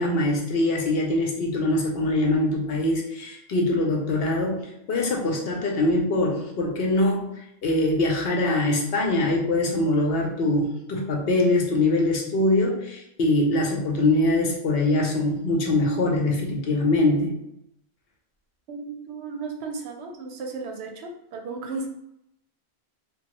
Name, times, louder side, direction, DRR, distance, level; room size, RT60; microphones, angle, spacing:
voice 1, 0.0-4.6 4.9-7.3 7.6-17.3, left 2 dB, 70° left, 0 dB, 0.9 m, -23 dB
voice 2, 18.7-21.9, right 4 dB, 85° right, 3 dB, 0.8 m, -34 dB
3.0 x 2.3 x 3.0 m, 0.81 s
omnidirectional pair, 1.1 m